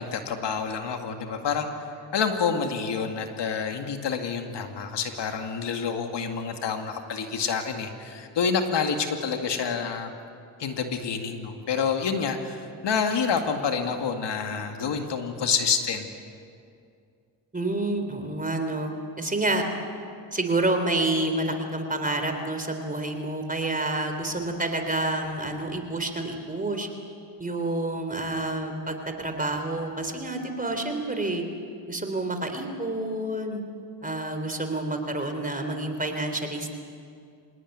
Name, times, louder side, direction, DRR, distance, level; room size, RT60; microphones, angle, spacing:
voice 1, 0.0-1.7 2.1-10.1 10.6-16.1, left 6 dB, 60° left, 5 dB, 2.3 m, -28 dB
voice 2, 17.5-19.6 20.3-26.9 27.4-31.4 31.9-33.6 34.0-36.7, right 2 dB, 15° right, 6 dB, 3.5 m, -28 dB
26.0 x 18.5 x 9.6 m, 2.4 s
cardioid pair, 90°, 47 cm